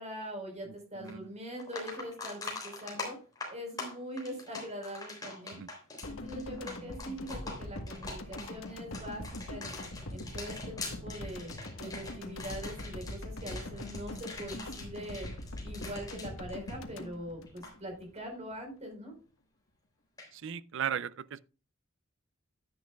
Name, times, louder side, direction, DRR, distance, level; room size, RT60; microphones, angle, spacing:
voice 1, 0.0-3.2 3.4-5.6 6.0-9.7 10.1-11.5 11.8-15.3 15.6-19.1, equal, 35° right, 4.6 m, -42 dB
sound 1, 1.1-1.2 1.6-17.2 17.5-17.7 20.2-20.3, left 3 dB, 20° left, 3.6 m, -44 dB
sound 2, 6.0-18.2 18.5-18.7, left 1 dB, 80° left, 1.4 m, -42 dB
voice 2, 20.3-21.4, right 8 dB, 65° right, 0.5 m, -36 dB
10.5 x 10.5 x 2.4 m
head